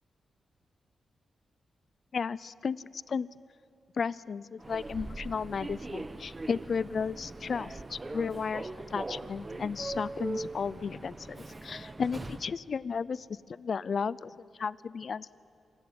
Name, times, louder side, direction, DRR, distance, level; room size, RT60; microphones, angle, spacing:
voice 1, 2.1-3.3 4.0-15.3, left 5 dB, 60° left, 20 dB, 0.5 m, -34 dB
Human voice / Subway metro underground, 4.6-12.6, right 2 dB, 25° right, 0.9 m, -41 dB
26.0 x 14.5 x 9.7 m, 2.8 s
cardioid pair, 75°, 0 cm